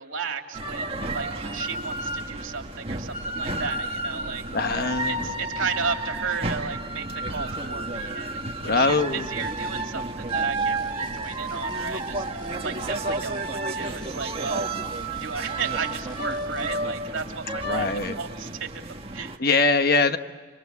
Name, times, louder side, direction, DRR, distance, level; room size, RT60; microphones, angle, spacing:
voice 1, 0.0-4.4 5.0-12.2 12.6-14.7 15.2-18.7 19.1-19.4, right 5 dB, 75° right, 4 dB, 2.8 m, -34 dB
sound 1, 0.5-19.4, right 2 dB, 30° right, 1.5 m, -31 dB
voice 2, 4.5-5.2 8.6-9.3 17.6-18.2 19.4-20.2, left 3 dB, 50° left, 8 dB, 1.2 m, -22 dB
sound 2, 9.4-9.9 10.3-13.6 13.8-16.7, left 2 dB, 20° left, 1.0 m, -48 dB
27.5 x 25.0 x 8.3 m, 1.5 s
head